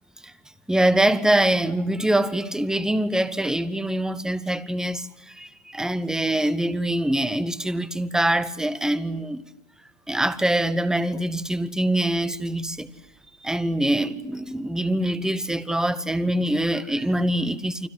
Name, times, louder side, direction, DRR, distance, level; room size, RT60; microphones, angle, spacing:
voice 1, 0.7-9.4 10.1-12.9 13.4-17.9, right 1 dB, ahead, 1.0 m, -24 dB
29.5 x 25.0 x 8.1 m
hypercardioid pair, 130°, 37 cm